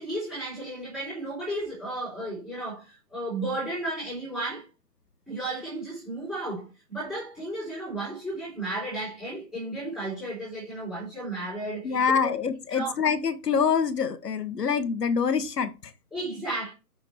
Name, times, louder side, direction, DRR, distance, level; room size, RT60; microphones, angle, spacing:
voice 1, 0.0-4.6 5.3-12.2 12.7-12.9 16.1-16.7, right 2 dB, ahead, 3.8 m, -34 dB
voice 2, 11.8-15.9, left 6 dB, 75° left, 1.2 m, -25 dB
6.7 x 6.2 x 3.5 m
hypercardioid pair, 175°, 48 cm